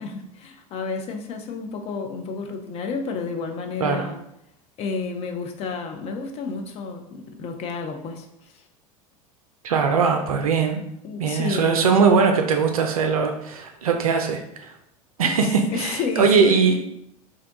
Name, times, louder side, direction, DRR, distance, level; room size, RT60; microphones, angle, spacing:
voice 1, 0.0-4.2 4.8-8.3 11.0-11.9 15.2-15.3 15.7-16.6, left 4 dB, 30° left, 4 dB, 0.5 m, -30 dB
voice 2, 9.6-10.8 11.2-14.7 15.2-16.8, right 5 dB, 70° right, 4 dB, 0.4 m, -20 dB
2.6 x 2.2 x 3.8 m, 0.79 s
figure-of-eight pair, 80°, 19 cm